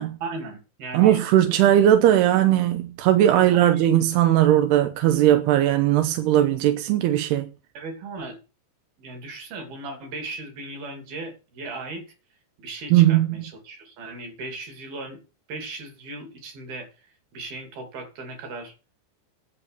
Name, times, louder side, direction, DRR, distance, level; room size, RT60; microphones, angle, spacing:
voice 1, 0.2-1.2 3.4-3.9 7.7-8.4 9.0-12.0 12.6-15.2 15.5-16.9 17.3-18.7, right 3 dB, 55° right, 4.4 m, -37 dB
voice 2, 0.9-7.5 12.9-13.3, right 12 dB, 75° right, 2.6 m, -18 dB
11.0 x 7.4 x 6.8 m
omnidirectional pair, 5.3 m